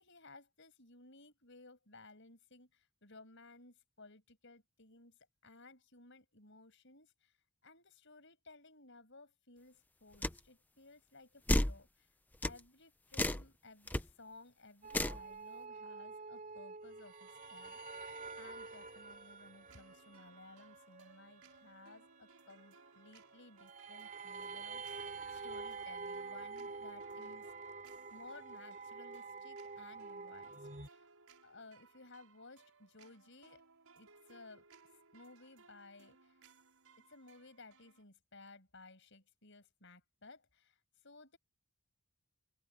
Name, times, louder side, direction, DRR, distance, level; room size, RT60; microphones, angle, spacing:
voice 1, 0.0-7.4 7.6-12.1 12.4-27.5 28.1-31.1 31.4-33.6 33.9-34.7 35.1-36.4 37.0-41.4, left 3 dB, 55° left, 6.5 m, -58 dB
sound 1, 10.2-10.4 11.5-11.8 12.4-12.6 13.1-13.5 13.9-14.0 14.9-15.2, left 1 dB, 10° left, 0.7 m, -32 dB
sound 2, 14.8-30.9, right 4 dB, 35° right, 4.2 m, -48 dB
sound 3, 19.7-38.0, right 4 dB, 85° right, 6.2 m, -64 dB
open air
head